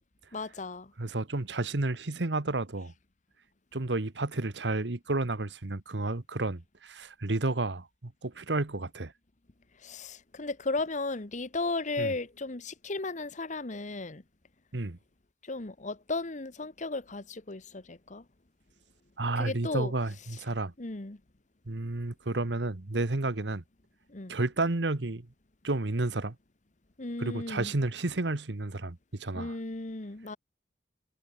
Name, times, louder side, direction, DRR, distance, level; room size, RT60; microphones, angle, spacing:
voice 1, 0.3-0.9 9.8-14.2 15.4-18.2 19.4-19.9 20.8-21.2 24.1-24.4 27.0-27.7 29.3-30.4, left 3 dB, 45° left, 1.3 m, -35 dB
voice 2, 1.0-2.9 3.7-9.1 12.0-12.1 14.7-15.0 19.2-20.7 21.7-23.6 24.3-25.3 25.6-26.3 27.2-29.6, right 2 dB, 85° right, 1.4 m, -31 dB
head